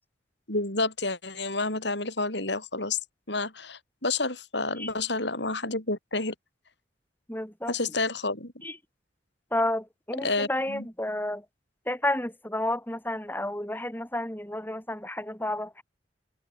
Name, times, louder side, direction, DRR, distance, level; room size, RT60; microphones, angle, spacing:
voice 1, 0.5-3.0 3.3-6.3 7.7-8.5 10.2-10.9, left 3 dB, 65° left, 7.8 m, -29 dB
voice 2, 7.3-7.7 8.6-8.8 9.5-11.5 11.9-15.8, left 1 dB, 10° left, 7.2 m, -31 dB
head